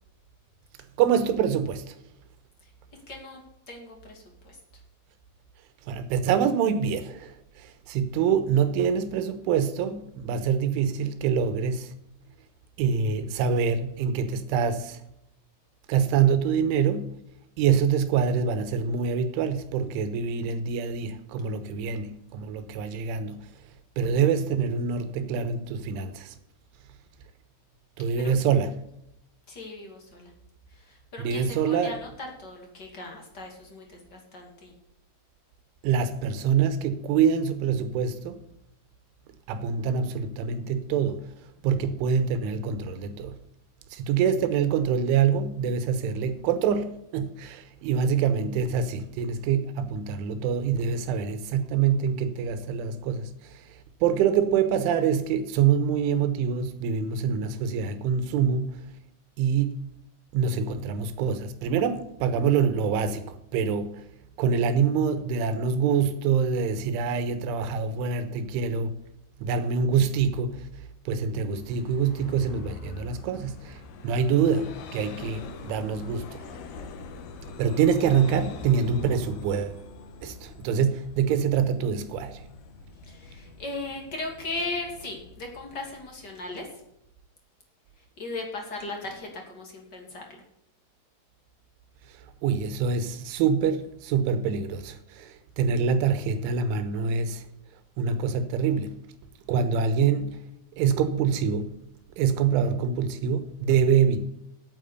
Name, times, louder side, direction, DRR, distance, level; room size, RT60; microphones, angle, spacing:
voice 1, 1.0-1.9 5.9-11.9 12.8-15.0 15.9-17.1 17.6-23.4 24.0-26.3 28.0-28.7 31.2-31.9 35.8-38.4 39.5-41.3 41.6-43.3 43.9-53.3 54.0-58.8 59.4-59.9 60.3-64.0 64.4-68.9 69.4-70.6 71.1-73.8 74.0-76.4 77.6-79.8 80.2-82.4 92.4-97.4 98.0-99.0 99.5-100.4 100.8-101.7 102.2-104.2, right 6 dB, 85° right, 3.4 m, -25 dB
voice 2, 3.1-3.4 3.7-4.6 28.2-28.3 29.5-30.3 30.7-34.7 83.0-86.8 88.2-90.4, left 2 dB, 30° left, 2.2 m, -38 dB
Vehicle, 71.5-86.9, left 4 dB, 75° left, 2.1 m, -44 dB
9.0 x 8.7 x 8.3 m
omnidirectional pair, 5.6 m